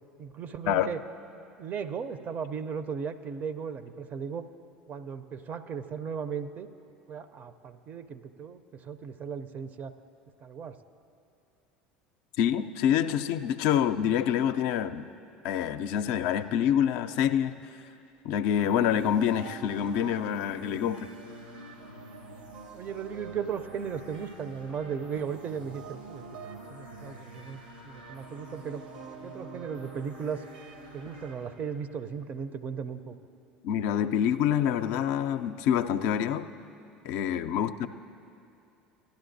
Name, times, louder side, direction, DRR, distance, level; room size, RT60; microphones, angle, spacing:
voice 1, 0.2-1.0 1.6-4.4 4.9-6.7 7.1-9.9 10.4-10.8 22.7-26.3 26.7-28.8 29.2-30.4 30.9-33.2, right 6 dB, 40° right, 12 dB, 0.5 m, -36 dB
voice 2, 12.4-15.1 15.4-17.6 18.2-21.1 33.6-36.5 37.0-37.9, left 9 dB, 60° left, 9 dB, 0.4 m, -26 dB
sound 1, 18.5-32.1, right 3 dB, 80° right, 1.1 m, -46 dB
17.0 x 11.5 x 2.6 m, 2.6 s
hypercardioid pair, 70°, 4 cm